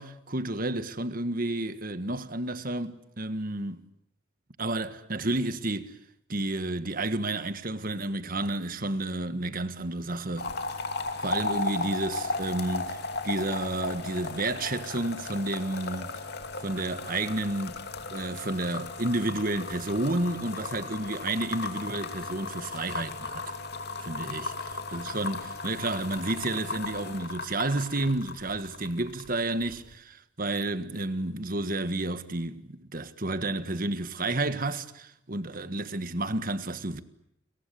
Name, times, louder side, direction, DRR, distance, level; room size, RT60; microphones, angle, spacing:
voice 1, 0.0-3.8 4.6-5.9 6.3-10.5 11.2-13.0 13.2-16.2 16.6-17.8 18.1-23.4 24.0-24.5 24.9-37.0, right 2 dB, 45° right, 1.6 m, -31 dB
sound 1, 10.4-29.3 29.6-30.0, left 3 dB, 55° left, 2.7 m, -36 dB
30.0 x 23.5 x 8.4 m
head